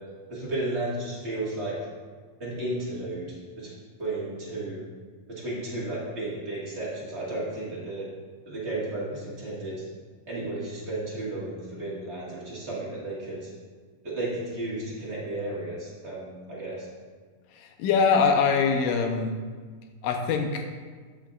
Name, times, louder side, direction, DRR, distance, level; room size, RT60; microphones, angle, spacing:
voice 1, 0.3-1.7 2.4-3.3 3.6-3.7 4.0-4.8 5.3-8.1 8.4-9.7 10.3-13.5 14.0-16.8, right 2 dB, 35° right, -7 dB, 1.1 m, -33 dB
voice 2, 17.6-19.4 20.0-20.6, left 5 dB, 80° left, 3 dB, 2.1 m, -23 dB
13.5 x 5.7 x 2.4 m, 1.5 s
omnidirectional pair, 4.1 m